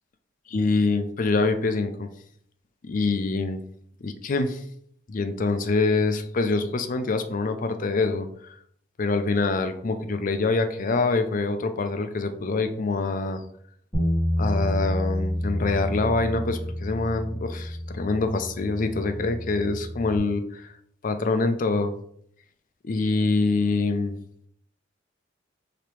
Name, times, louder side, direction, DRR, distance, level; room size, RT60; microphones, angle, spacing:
voice 1, 0.5-2.1 2.8-3.6 4.0-4.6 5.1-8.5 9.0-13.4 14.4-20.7 21.0-21.9 22.8-24.1, left 3 dB, 45° left, 8 dB, 0.4 m, -25 dB
Bass guitar, 13.9-20.2, equal, 15° left, 1.7 m, -29 dB
5.0 x 2.9 x 3.0 m, 0.65 s
head